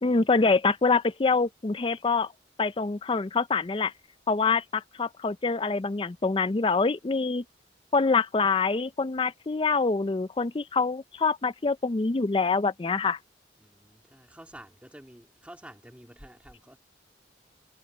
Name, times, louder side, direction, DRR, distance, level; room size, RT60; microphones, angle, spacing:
voice 1, 0.0-2.3 2.6-3.9 4.3-7.4 7.9-13.2, left 4 dB, 30° left, 0.4 m, -25 dB
voice 2, 13.6-16.8, right 1 dB, 5° right, 2.4 m, -49 dB
head